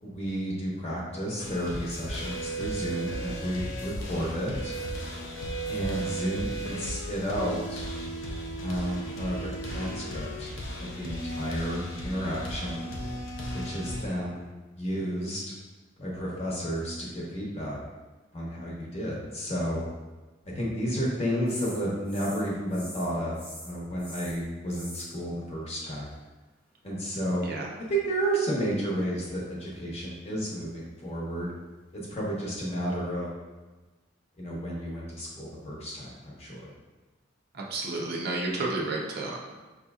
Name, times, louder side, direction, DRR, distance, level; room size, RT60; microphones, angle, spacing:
voice 1, 0.0-4.8 5.7-7.8 8.6-10.5 10.8-12.9 13.5-14.5 14.8-15.5 16.0-17.8 18.3-19.8 20.4-23.4 23.6-26.1 26.8-27.5 27.9-31.5 31.9-33.3 34.4-36.7, equal, 35° left, -4 dB, 0.9 m, -32 dB
sound 1, 1.4-14.0, right 1 dB, 85° left, 0.6 m, -35 dB
sound 2, 21.5-22.4 22.7-23.1 23.3-25.1 29.2-30.2 30.7-30.8, equal, 10° left, 0.6 m, -45 dB
voice 2, 37.5-39.5, right 2 dB, 55° right, -2 dB, 0.6 m, -31 dB
5.1 x 2.8 x 2.3 m, 1.2 s
head